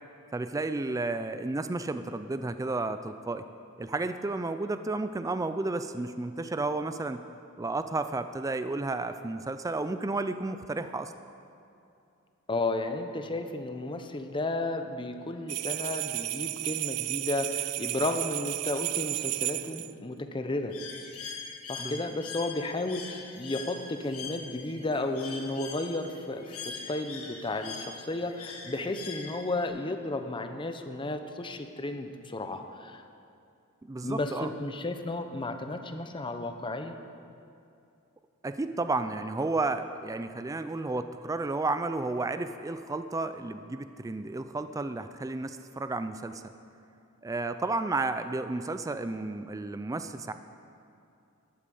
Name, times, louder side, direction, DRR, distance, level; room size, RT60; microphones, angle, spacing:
voice 1, 0.3-3.4 3.8-7.2 7.6-11.1 21.8-22.0 33.9-34.5 38.4-46.4 47.2-50.3, right 3 dB, 15° right, 10 dB, 0.3 m, -32 dB
voice 2, 12.5-20.8 21.7-33.0 34.0-37.0, left 2 dB, 25° left, 7 dB, 0.7 m, -33 dB
sound 1, 15.5-19.9, right 18 dB, 85° right, 0.4 m, -33 dB
Bird, 20.7-29.7, left 5 dB, 90° left, 1.8 m, -42 dB
13.0 x 8.4 x 7.0 m, 2.6 s
head